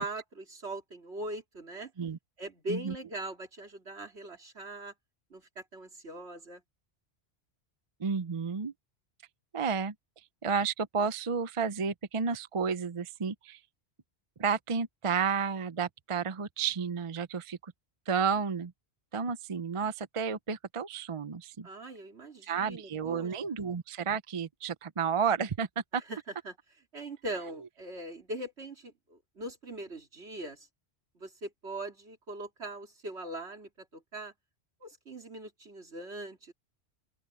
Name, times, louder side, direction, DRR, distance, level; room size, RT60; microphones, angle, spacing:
voice 1, 0.0-1.9 2.4-4.9 5.3-6.6 21.6-23.3 26.1-26.2 26.5-26.6 26.9-30.7 31.2-34.3 34.8-36.5, right 1 dB, 75° right, 3.5 m, -41 dB
voice 2, 8.0-8.7 9.5-9.9 10.4-13.6 14.4-17.7 18.1-18.7 19.1-21.7 22.4-25.7 25.9-26.0, right 6 dB, 35° right, 0.6 m, -31 dB
open air
omnidirectional pair, 1.1 m